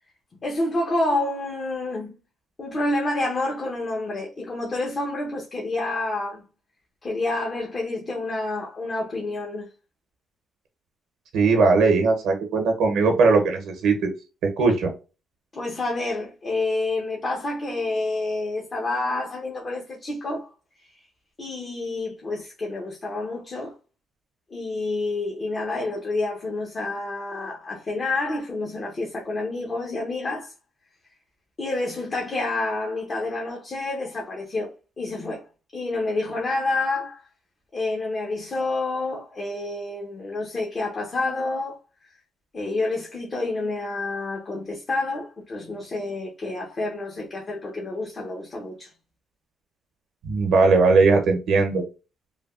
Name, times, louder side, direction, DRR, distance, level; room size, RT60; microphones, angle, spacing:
voice 1, 0.4-2.1 2.6-6.4 7.0-9.7 15.5-20.5 21.4-23.7 24.5-30.5 31.6-34.7 35.0-35.5 35.7-37.2 37.7-41.8 42.5-48.9, left 2 dB, 40° left, 0.7 m, -28 dB
voice 2, 11.3-14.1 14.6-14.9 50.2-51.8, right 4 dB, 80° right, 0.8 m, -19 dB
3.2 x 2.3 x 2.3 m
cardioid pair, 90°, 0 cm